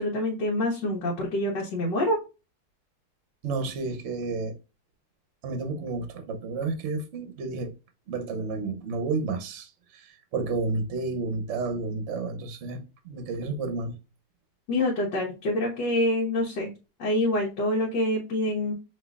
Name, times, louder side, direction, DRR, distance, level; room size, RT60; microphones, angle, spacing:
voice 1, 0.0-2.2 14.7-16.7 17.0-18.7, left 1 dB, 90° left, 1.7 m, -26 dB
voice 2, 3.4-4.5 5.4-7.7 8.1-9.7 10.3-13.9, right 3 dB, 55° right, 0.9 m, -31 dB
5.3 x 3.1 x 2.3 m
omnidirectional pair, 1.8 m